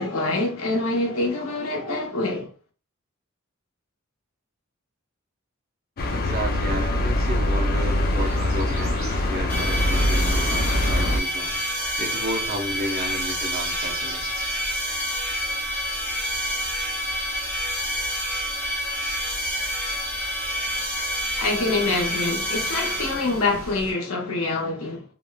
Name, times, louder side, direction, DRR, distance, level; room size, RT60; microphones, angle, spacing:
voice 1, 0.0-2.5 21.4-25.0, left 2 dB, 80° left, 0.8 m, -25 dB
sound 1, 6.0-11.2, left 1 dB, 45° left, 0.4 m, -23 dB
voice 2, 6.1-14.3, right 1 dB, 45° right, 0.6 m, -32 dB
sound 2, 7.8-23.9, right 1 dB, 80° right, 1.1 m, -41 dB
sound 3, 9.5-23.6, equal, 5° left, 0.7 m, -28 dB
2.9 x 2.1 x 2.2 m
head